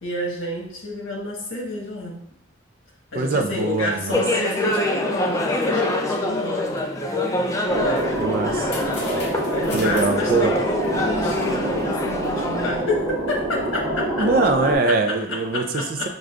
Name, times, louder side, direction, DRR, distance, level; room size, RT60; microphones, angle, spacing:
voice 1, 0.0-2.2 3.1-6.8 7.8-8.2 8.9-14.3 14.6-16.1, left 2 dB, 90° left, -2 dB, 1.3 m, -29 dB
voice 2, 3.1-4.2 8.2-8.7 9.7-10.5 14.2-16.1, right 3 dB, 50° right, 5 dB, 0.4 m, -22 dB
sound 1, 4.1-12.7, left 1 dB, 15° left, 0.4 m, -25 dB
sound 2, 7.7-14.8, right 1 dB, 85° right, 1.1 m, -26 dB
sound 3, 7.9-12.7, left 2 dB, 60° left, 1.0 m, -40 dB
6.3 x 2.3 x 2.4 m, 0.70 s
head